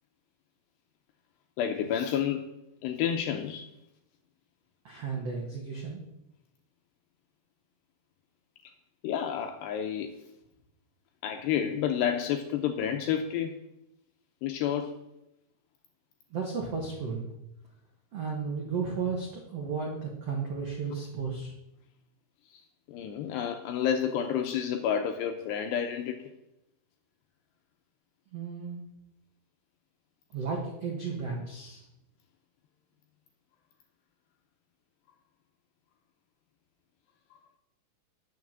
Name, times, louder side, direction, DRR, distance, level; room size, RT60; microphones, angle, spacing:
voice 1, 1.6-2.5 2.8-3.7 9.0-10.1 11.2-13.6 14.4-15.0 22.5-22.6 22.9-26.3, left 9 dB, 85° left, 5 dB, 2.5 m, -30 dB
voice 2, 4.8-6.0 16.3-17.2 18.1-21.5 28.3-28.8 30.3-31.8, right 5 dB, 75° right, 0 dB, 1.4 m, -34 dB
10.5 x 7.1 x 7.4 m, 0.86 s
omnidirectional pair, 5.5 m